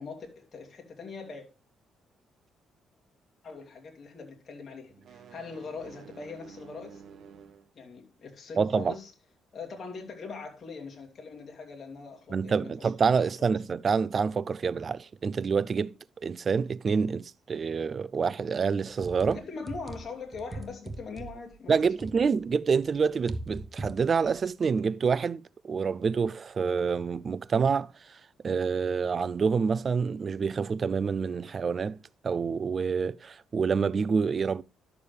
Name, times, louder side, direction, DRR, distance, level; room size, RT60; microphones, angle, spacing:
voice 1, 0.0-1.5 3.4-7.0 7.7-9.1 9.5-12.9 13.2-13.6 19.3-21.9, left 4 dB, 45° left, 2.7 m, -42 dB
sound 1, 4.9-7.7, right 7 dB, 65° right, 1.1 m, -50 dB
voice 2, 8.6-8.9 12.3-15.9 16.2-19.4 21.7-27.9 28.4-32.0 32.2-34.6, right 5 dB, 45° right, 0.4 m, -27 dB
sound 2, 19.0-22.5 22.8-24.5, right 2 dB, 25° right, 0.9 m, -40 dB
11.0 x 6.9 x 3.3 m
cardioid pair, 90°, 0 cm